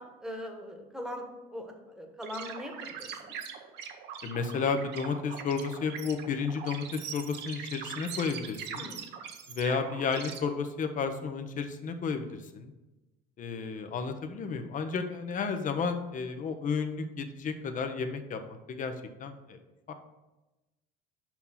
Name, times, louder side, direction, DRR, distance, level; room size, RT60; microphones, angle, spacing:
voice 1, 0.0-3.3 8.7-9.0, equal, 5° right, 2 dB, 1.3 m, -41 dB
sound 1, 2.2-10.4, right 7 dB, 60° right, 0.9 m, -42 dB
voice 2, 4.2-8.8 9.5-12.7 13.4-18.9 19.2-19.6 19.9-20.0, left 5 dB, 40° left, 8 dB, 0.8 m, -32 dB
5.5 x 4.5 x 5.6 m, 1.0 s
supercardioid pair, 90°, 20 cm